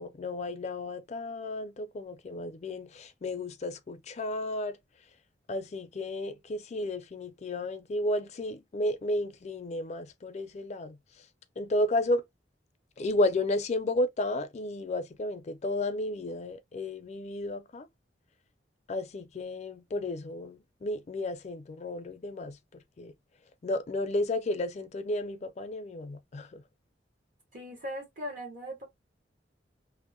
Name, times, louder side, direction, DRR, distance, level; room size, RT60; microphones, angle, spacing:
voice 1, 0.0-4.8 5.5-11.0 11.6-12.2 13.0-17.9 18.9-23.1 23.6-26.6, left 1 dB, 40° left, 0.4 m, -32 dB
voice 2, 27.5-28.8, equal, 50° right, 0.8 m, -39 dB
2.6 x 2.0 x 2.6 m
head